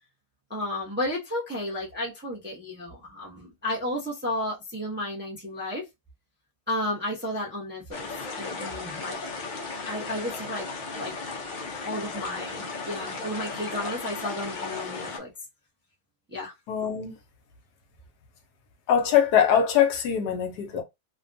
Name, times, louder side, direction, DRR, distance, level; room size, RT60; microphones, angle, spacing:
voice 1, 0.5-5.9 6.7-8.1 8.4-9.2 9.8-10.7 10.9-11.1 11.8-15.3 16.3-16.5, left 1 dB, 10° right, 0.5 m, -32 dB
sound 1, 7.9-15.2, left 3 dB, 50° left, 0.5 m, -35 dB
voice 2, 16.7-17.1 18.9-20.8, left 9 dB, 85° left, 1.3 m, -22 dB
3.2 x 2.2 x 2.6 m
omnidirectional pair, 1.7 m